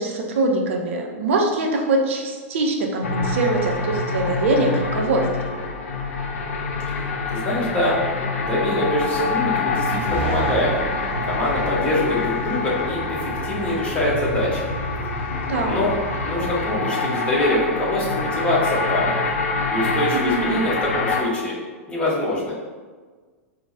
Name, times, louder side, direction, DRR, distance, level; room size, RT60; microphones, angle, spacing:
voice 1, 0.0-5.6 15.5-15.9 20.1-20.6, right 2 dB, 60° right, 2 dB, 0.5 m, -23 dB
sound 1, 3.0-21.2, left 3 dB, 65° left, 0.5 m, -26 dB
voice 2, 7.0-8.0 8.4-10.7 11.2-14.7 15.6-16.0 16.2-19.2 19.7-21.6 21.9-22.5, left 1 dB, 15° left, -6 dB, 1.0 m, -24 dB
sound 2, 10.0-16.8, right 4 dB, 20° right, 0.7 m, -36 dB
4.4 x 2.1 x 2.8 m, 1.4 s
figure-of-eight pair, 95°, 8 cm